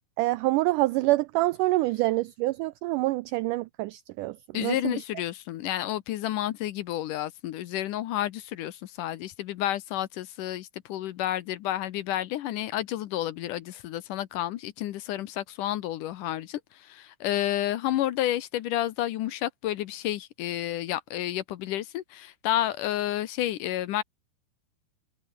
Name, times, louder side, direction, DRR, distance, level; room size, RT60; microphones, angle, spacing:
voice 1, 0.0-5.0, right 19 dB, 85° right, 1.8 m, -26 dB
voice 2, 4.5-24.0, left 13 dB, 70° left, 2.3 m, -30 dB
omnidirectional pair, 4.3 m